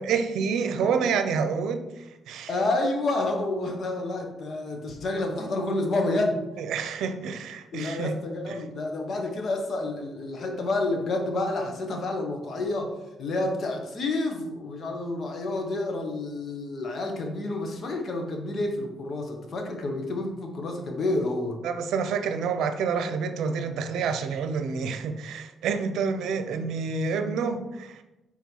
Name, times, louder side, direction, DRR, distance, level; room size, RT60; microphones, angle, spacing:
voice 1, 0.0-1.9 2.3-2.5 6.6-8.1 8.5-8.6 21.6-28.0, right 5 dB, 80° right, 8 dB, 0.6 m, -28 dB
voice 2, 2.5-6.4 7.7-12.9 13.2-21.6, left 2 dB, 50° left, 3 dB, 1.3 m, -29 dB
4.6 x 4.5 x 5.5 m, 0.97 s
cardioid pair, 90°, 0 cm